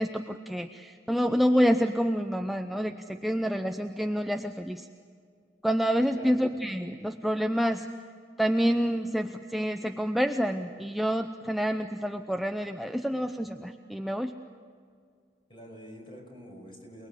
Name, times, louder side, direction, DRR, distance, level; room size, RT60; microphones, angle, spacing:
voice 1, 0.0-4.9 5.6-7.9 8.4-14.3, equal, ahead, 5 dB, 0.6 m, -28 dB
voice 2, 6.1-6.5 15.5-17.1, left 1 dB, 30° left, 2 dB, 5.6 m, -46 dB
28.5 x 20.5 x 8.3 m, 2.1 s
head